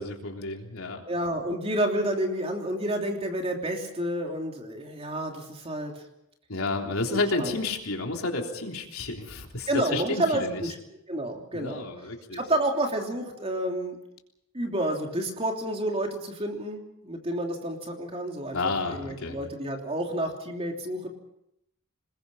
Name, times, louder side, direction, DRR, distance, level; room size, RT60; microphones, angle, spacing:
voice 1, 0.0-1.0 6.5-10.6 11.5-12.4 18.5-19.4, left 3 dB, 75° left, 2 dB, 3.5 m, -31 dB
voice 2, 1.1-6.0 7.1-7.5 9.6-10.7 11.1-11.9 12.3-14.0 14.5-21.1, right 1 dB, 25° right, 2 dB, 3.2 m, -30 dB
27.0 x 21.0 x 5.6 m, 0.82 s
head